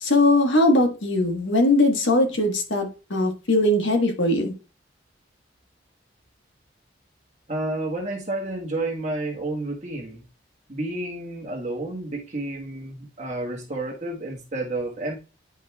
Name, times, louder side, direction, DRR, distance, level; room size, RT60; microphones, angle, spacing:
voice 1, 0.0-4.5, left 1 dB, 75° left, 1.4 m, -20 dB
voice 2, 7.5-10.2 10.7-15.2, right 2 dB, 35° right, 1.4 m, -30 dB
9.4 x 5.2 x 2.3 m
head